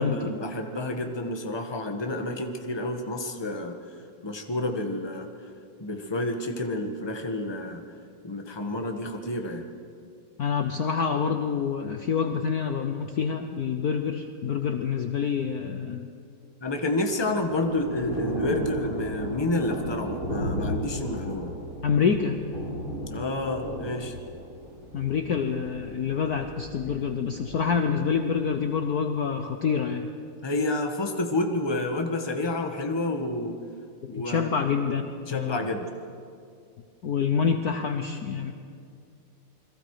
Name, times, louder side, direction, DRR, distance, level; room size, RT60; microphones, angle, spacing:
voice 1, 0.0-3.8 4.2-5.3 5.8-7.8 8.2-9.6 16.6-21.5 23.1-24.1 30.4-33.6 34.1-34.7 35.3-35.9, left 2 dB, 15° left, 4 dB, 1.3 m, -29 dB
voice 2, 10.4-16.1 21.8-22.4 24.9-30.1 34.0-35.1 35.3-35.6 37.0-38.5, left 6 dB, 55° left, 6 dB, 1.2 m, -27 dB
Thunder / Rain, 16.7-28.6, equal, 40° right, 7.4 m, -35 dB
28.5 x 22.0 x 5.0 m, 2.4 s
omnidirectional pair, 2.3 m